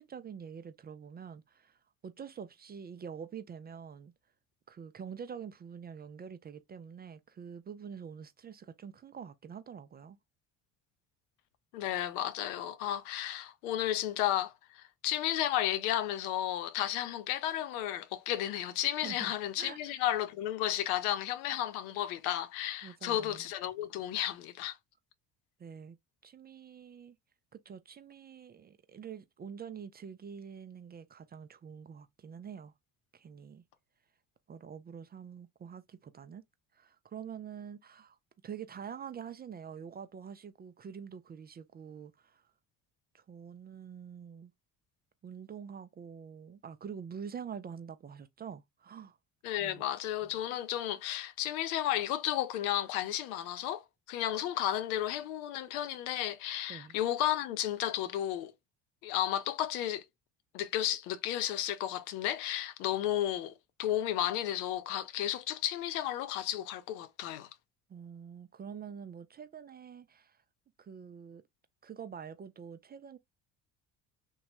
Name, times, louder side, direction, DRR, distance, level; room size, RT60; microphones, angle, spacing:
voice 1, 0.0-4.1 4.7-10.2 19.0-19.3 19.6-20.0 22.8-23.4 25.6-26.0 26.2-27.2 27.5-32.7 33.1-33.6 34.5-36.4 36.7-38.2 38.4-42.4 43.1-44.5 45.2-49.2 49.6-49.8 50.2-50.3 56.7-57.0 67.9-70.4 70.8-71.4 71.8-73.2, right 7 dB, 25° right, 0.3 m, -46 dB
voice 2, 11.7-24.8 49.4-58.5 59.0-60.0 60.5-67.5, left 12 dB, 85° left, 0.6 m, -33 dB
3.0 x 2.1 x 2.9 m
hypercardioid pair, 65°, 42 cm